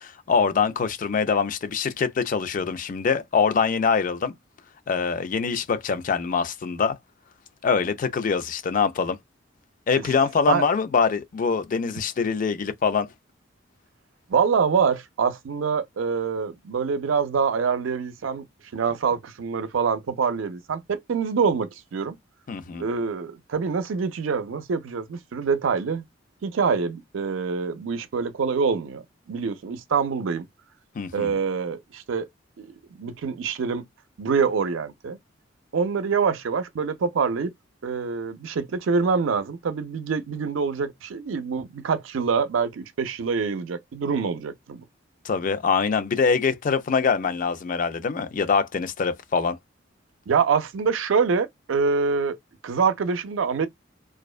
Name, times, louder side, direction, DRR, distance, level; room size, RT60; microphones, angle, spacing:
voice 1, 0.0-4.3 4.9-7.0 7.6-9.2 9.9-13.1 22.5-22.9 31.0-31.3 45.2-49.6, left 5 dB, 45° left, 0.4 m, -24 dB
voice 2, 14.3-18.4 18.7-22.2 22.8-26.0 26.4-29.0 29.3-30.5 31.1-32.3 32.6-33.8 34.2-35.2 35.7-37.5 37.8-44.8 50.3-52.4 52.6-53.7, right 5 dB, 90° right, 0.4 m, -25 dB
2.4 x 2.1 x 2.3 m
head